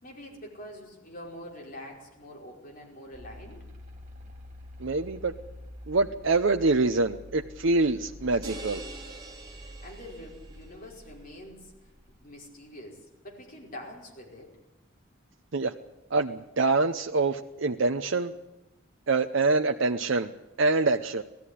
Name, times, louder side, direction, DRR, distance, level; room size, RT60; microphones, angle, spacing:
voice 1, 0.0-3.6 9.6-11.7 12.2-14.5, left 1 dB, 45° left, -1 dB, 5.2 m, -45 dB
sound 1, 3.1-12.2, left 1 dB, 35° right, 3.3 m, -47 dB
voice 2, 4.8-5.3 5.9-8.8 15.5-15.7 16.1-18.3 19.1-20.3 20.6-21.2, right 3 dB, 70° right, 5 dB, 0.7 m, -25 dB
sound 2, 8.4-10.8, right 2 dB, 20° right, 3.2 m, -44 dB
18.5 x 14.5 x 10.0 m, 1.0 s
head